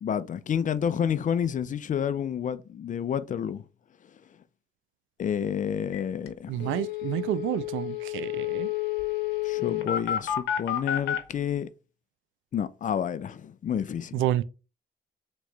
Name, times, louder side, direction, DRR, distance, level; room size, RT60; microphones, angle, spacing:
voice 1, 0.0-3.6 5.2-6.8 9.4-11.7 12.5-14.1, left 8 dB, 40° left, 0.4 m, -29 dB
sound 1, 5.9-6.0 6.3-6.4 6.6-11.2, left 12 dB, 90° left, 0.8 m, -30 dB
voice 2, 6.5-8.7 14.1-14.4, right 13 dB, 85° right, 0.4 m, -29 dB
3.6 x 3.0 x 3.3 m
cardioid pair, 90°, 20 cm